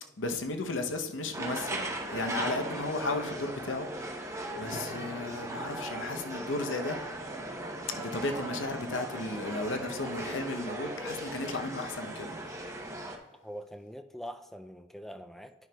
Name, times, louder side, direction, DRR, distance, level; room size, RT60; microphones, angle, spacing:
voice 1, 0.2-7.0 7.9-12.5, left 2 dB, 80° left, 0.7 m, -35 dB
sound 1, 1.3-13.2, right 1 dB, 15° right, 0.7 m, -38 dB
voice 2, 13.4-15.5, equal, ahead, 0.3 m, -43 dB
10.5 x 5.9 x 2.3 m
head